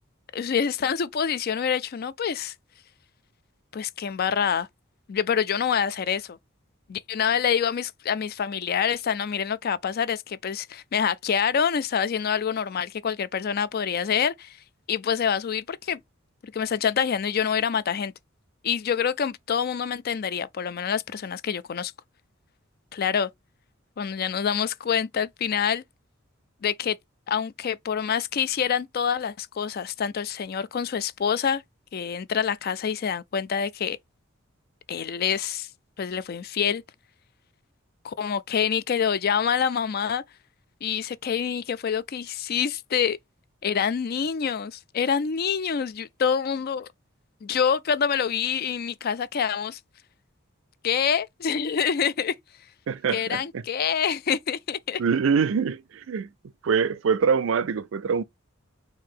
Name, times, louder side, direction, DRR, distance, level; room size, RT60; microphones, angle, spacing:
voice 1, 0.3-2.5 3.7-4.7 5.1-6.4 6.9-14.6 14.9-16.0 16.5-18.1 18.6-21.9 22.9-23.3 24.0-25.8 26.6-27.0 27.3-31.6 31.9-34.0 34.9-35.7 36.0-36.8 38.0-40.2 40.8-43.2 43.6-46.9 47.4-49.8 50.8-52.3 53.1-55.0, left 7 dB, 50° left, 0.4 m, -26 dB
voice 2, 52.9-53.4 55.0-56.3 56.6-58.2, right 6 dB, 70° right, 0.4 m, -24 dB
4.6 x 2.7 x 3.7 m
head